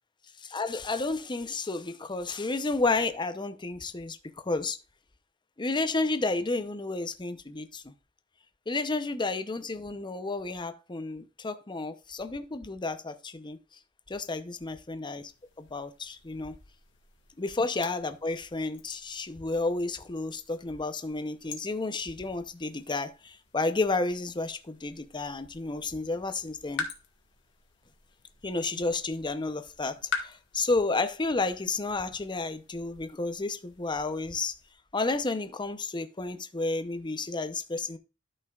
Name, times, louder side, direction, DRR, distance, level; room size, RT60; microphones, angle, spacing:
voice 1, 0.4-4.8 5.6-7.9 8.7-13.6 14.1-15.3 15.6-16.6 17.4-26.9 28.4-34.5 34.9-38.0, left 3 dB, 25° left, 0.7 m, -31 dB
sound 1, 15.2-34.7, left 5 dB, 65° left, 1.6 m, -46 dB
13.0 x 5.5 x 2.4 m
head